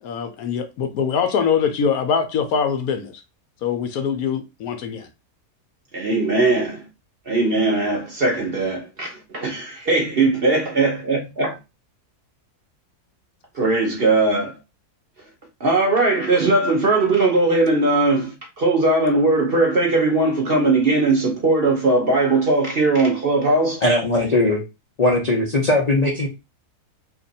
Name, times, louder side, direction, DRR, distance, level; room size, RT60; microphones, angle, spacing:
voice 1, 0.0-3.2 3.6-5.1, left 6 dB, 70° left, 1.0 m, -23 dB
voice 2, 5.9-6.9 7.3-11.6 13.5-14.6 15.6-23.8, right 2 dB, 45° right, 0.9 m, -19 dB
voice 3, 23.8-24.6 25.0-26.3, left 2 dB, 45° left, 0.5 m, -19 dB
2.9 x 2.5 x 3.9 m
omnidirectional pair, 1.7 m